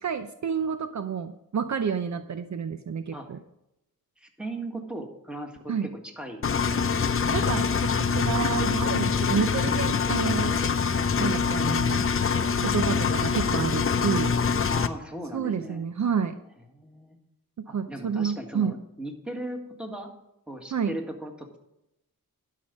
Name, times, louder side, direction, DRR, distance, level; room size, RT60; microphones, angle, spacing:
voice 1, 0.0-3.4 5.7-5.9 7.3-10.6 11.2-12.0 12.6-14.4 15.3-16.4 17.6-18.8 20.7-20.9, right 6 dB, 55° right, 9 dB, 0.6 m, -29 dB
voice 2, 4.2-7.0 14.7-15.9 16.7-17.2 17.7-20.1 20.5-21.6, right 1 dB, 5° right, 3 dB, 1.8 m, -38 dB
Engine, 6.4-14.9, left 6 dB, 40° left, 0.6 m, -24 dB
12.0 x 5.8 x 5.2 m, 0.85 s
wide cardioid pair, 85°, 35 cm